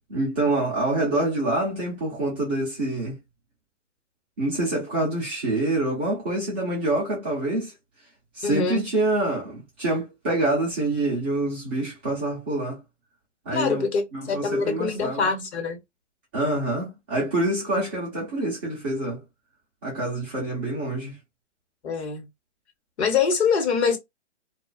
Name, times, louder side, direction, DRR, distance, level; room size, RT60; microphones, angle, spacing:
voice 1, 0.1-3.1 4.4-7.7 8.3-12.8 13.5-13.8 14.1-15.3 16.3-19.2 19.8-21.2, right 2 dB, 10° right, 0.3 m, -26 dB
voice 2, 8.4-8.9 13.5-15.8 21.8-22.3 23.0-24.0, left 5 dB, 65° left, 1.1 m, -24 dB
2.3 x 2.3 x 2.3 m
hypercardioid pair, 135°, 36 cm